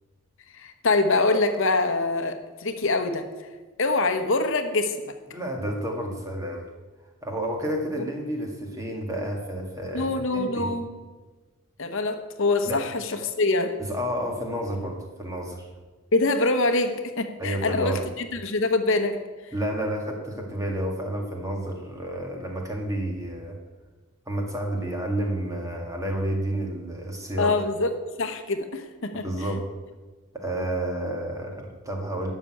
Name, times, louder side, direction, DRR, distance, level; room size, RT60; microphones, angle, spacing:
voice 1, 0.5-3.3 3.8-5.1 9.9-10.9 11.8-13.7 16.1-19.2 27.4-27.9 28.2-29.2, left 3 dB, 60° left, 7 dB, 1.0 m, -24 dB
voice 2, 5.3-6.7 7.2-10.7 12.7-12.8 13.8-15.7 17.4-18.1 19.5-23.6 24.3-27.6 29.2-29.7 30.3-32.3, right 1 dB, 15° right, 1 dB, 1.9 m, -30 dB
12.5 x 6.2 x 8.7 m, 1.3 s
head